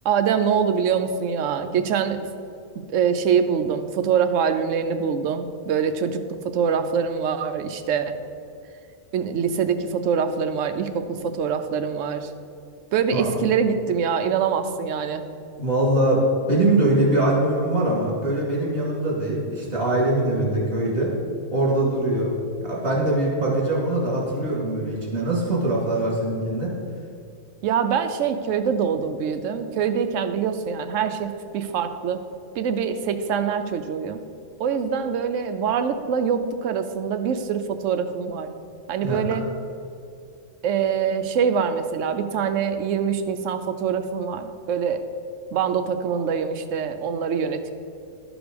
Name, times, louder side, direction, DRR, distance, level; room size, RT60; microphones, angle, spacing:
voice 1, 0.0-2.3 2.8-8.1 9.1-12.3 12.9-15.2 27.6-32.2 32.6-34.2 34.6-38.5 38.9-39.5 40.6-45.0 45.5-47.7, right 7 dB, 80° right, 8 dB, 1.0 m, -24 dB
voice 2, 15.6-16.2 16.5-21.1 21.5-22.4 22.6-26.7 39.0-39.2, right 1 dB, 45° right, -4 dB, 2.7 m, -22 dB
12.0 x 5.0 x 5.1 m, 2.4 s
omnidirectional pair, 1.3 m